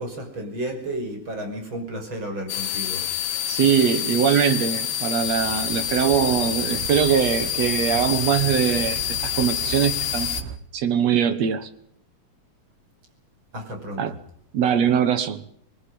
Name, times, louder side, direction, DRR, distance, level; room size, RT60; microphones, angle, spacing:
voice 1, 0.0-3.0 13.5-14.0, right 1 dB, 30° right, 6.3 m, -32 dB
sound 1, 2.5-10.4, left 11 dB, 80° left, 3.3 m, -27 dB
voice 2, 3.5-9.0 9.4-10.4 10.7-11.7 14.0-14.2 14.5-15.4, right 8 dB, 60° right, 1.9 m, -22 dB
sound 2, 5.2-10.6, right 8 dB, 90° right, 3.4 m, -37 dB
27.0 x 20.5 x 5.4 m
omnidirectional pair, 4.4 m